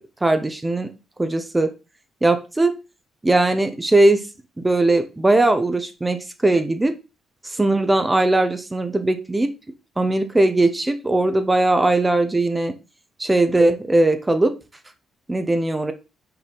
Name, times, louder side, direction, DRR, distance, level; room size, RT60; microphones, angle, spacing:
voice 1, 0.2-0.9 1.2-1.7 2.2-2.7 3.2-4.3 4.6-6.9 7.4-9.5 10.0-12.7 13.2-14.5 15.3-15.9, right 2 dB, 15° right, 8 dB, 1.0 m, -19 dB
5.7 x 4.2 x 5.4 m, 0.29 s
cardioid pair, 90°, 0 cm